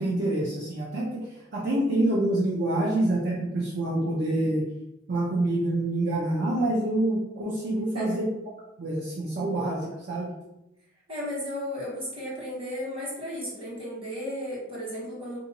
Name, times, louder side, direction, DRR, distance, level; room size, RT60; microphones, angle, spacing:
voice 1, 0.0-4.7 5.1-8.3 8.8-10.3, right 1 dB, 60° right, -5 dB, 0.6 m, -26 dB
voice 2, 7.7-8.2 11.1-15.4, left 1 dB, 30° right, -6 dB, 1.4 m, -34 dB
3.5 x 2.7 x 2.9 m, 0.89 s
head